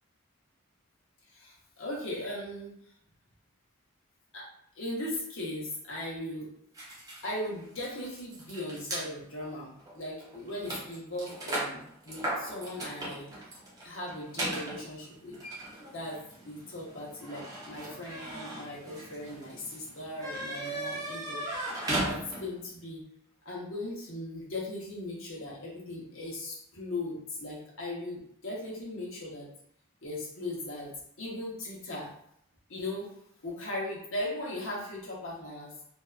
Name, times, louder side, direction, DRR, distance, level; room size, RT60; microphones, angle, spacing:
voice 1, 1.3-2.7 4.3-4.5 4.7-6.5 7.2-15.4 15.9-23.1 23.4-29.5 30.0-30.9 31.2-32.1 32.7-33.1 33.4-35.8, left 1 dB, 70° left, -4 dB, 0.9 m, -38 dB
sound 1, 6.7-9.1 9.8-9.9 10.2-22.7, right 1 dB, 15° right, 0.5 m, -38 dB
2.6 x 2.3 x 2.4 m, 0.71 s
head